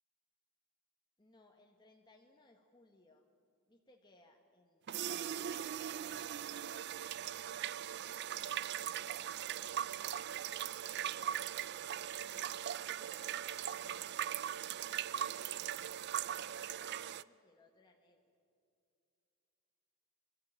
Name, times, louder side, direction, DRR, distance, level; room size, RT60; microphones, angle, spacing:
voice 1, 1.2-3.3 3.7-4.8 5.2-6.8 7.3-10.4 11.4-15.9 16.3-18.2, left 2 dB, 20° left, 2 dB, 1.3 m, -67 dB
sound 1, 4.9-17.2, right 10 dB, 55° right, 0.4 m, -40 dB
24.0 x 13.5 x 10.0 m, 2.6 s
head